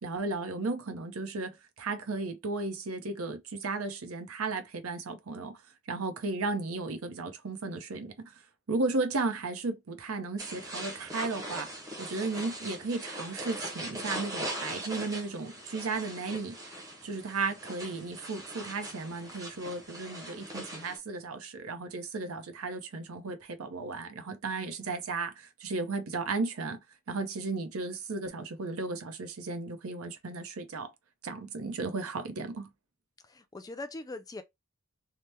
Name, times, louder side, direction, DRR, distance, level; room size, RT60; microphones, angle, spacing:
voice 1, 0.0-5.6 5.9-8.3 8.7-16.6 17.0-26.8 27.1-30.9 31.2-32.7, right 3 dB, 90° right, 0.7 m, -35 dB
sound 1, 10.4-21.0, right 1 dB, 15° right, 0.7 m, -40 dB
voice 2, 33.2-34.4, left 2 dB, 15° left, 0.3 m, -41 dB
2.9 x 2.1 x 3.3 m
head